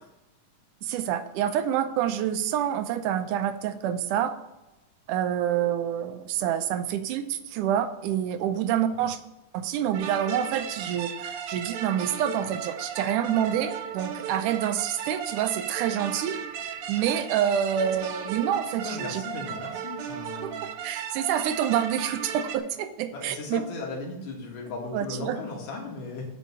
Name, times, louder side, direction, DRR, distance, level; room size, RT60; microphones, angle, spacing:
voice 1, 0.8-4.3 5.1-9.2 9.5-16.4 16.9-19.2 20.4-20.5 20.8-23.6 24.9-25.4, right 10 dB, 90° right, 9 dB, 2.2 m, -27 dB
sound 1, 9.9-22.6, right 8 dB, 70° right, 1.3 m, -36 dB
voice 2, 18.8-20.7 23.1-26.3, left 3 dB, 85° left, -1 dB, 3.6 m, -36 dB
8.4 x 5.4 x 7.0 m, 0.99 s
omnidirectional pair, 3.6 m